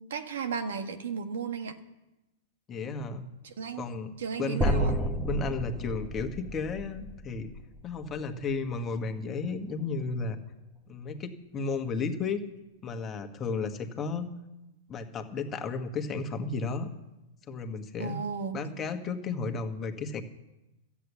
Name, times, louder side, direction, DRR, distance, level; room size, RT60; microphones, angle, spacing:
voice 1, 0.0-1.7 3.4-3.9 4.2-4.9 18.0-18.6, right 6 dB, 75° right, 6 dB, 1.5 m, -35 dB
voice 2, 2.7-3.3 3.8-7.5 7.8-10.4 10.9-12.5 12.8-14.3 14.9-16.9 17.5-18.2 18.5-20.2, left 4 dB, 25° left, 5 dB, 1.6 m, -33 dB
sound 1, 4.6-8.8, equal, 15° right, 1.4 m, -32 dB
13.5 x 8.5 x 8.3 m, 0.98 s
hypercardioid pair, 120°, 0 cm